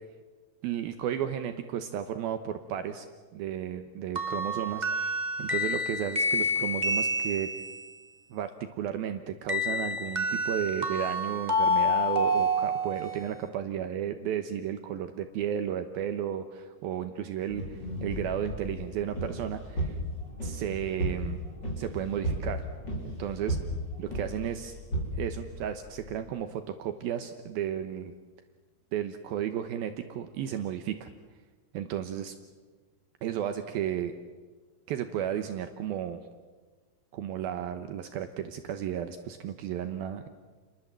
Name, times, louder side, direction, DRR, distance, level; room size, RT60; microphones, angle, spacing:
voice 1, 0.6-3.1 3.3-5.1 5.4-7.5 8.3-20.0 20.4-21.4 21.8-22.6 23.0-23.6 24.0-24.8 25.1-28.1 28.9-31.1 31.7-32.3 33.2-34.1 34.9-36.2 37.1-40.3, right 10 dB, 75° right, 7 dB, 2.8 m, -33 dB
sound 1, 4.2-7.9 9.5-13.3, left 1 dB, 20° right, 1.2 m, -28 dB
sound 2, 17.5-26.2, right 1 dB, 25° left, 5.8 m, -35 dB
30.0 x 22.5 x 7.6 m, 1.4 s
omnidirectional pair, 4.5 m